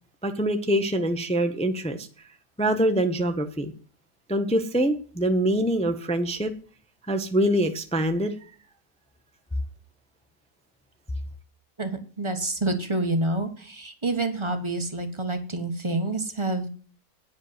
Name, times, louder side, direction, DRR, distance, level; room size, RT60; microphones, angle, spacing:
voice 1, 0.2-2.1 2.6-3.7 4.3-6.5 7.1-8.3, right 1 dB, 5° left, 7 dB, 0.5 m, -24 dB
voice 2, 11.8-16.7, right 2 dB, 20° right, 6 dB, 1.1 m, -28 dB
9.7 x 5.2 x 8.1 m, 0.41 s
omnidirectional pair, 1.8 m